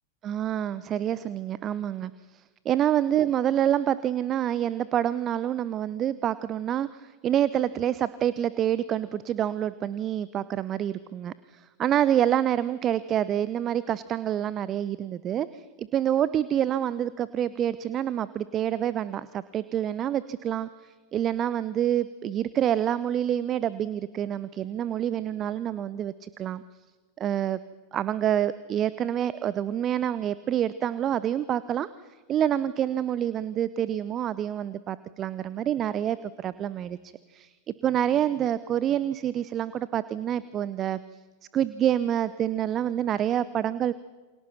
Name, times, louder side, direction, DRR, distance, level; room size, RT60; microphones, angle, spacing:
voice 1, 0.2-26.6 27.2-27.6 27.9-31.9 32.3-37.5 37.8-41.0 41.5-43.9, right 10 dB, 30° right, 17 dB, 0.8 m, -27 dB
29.0 x 26.5 x 6.0 m, 1.4 s
figure-of-eight pair, 90°, 0 cm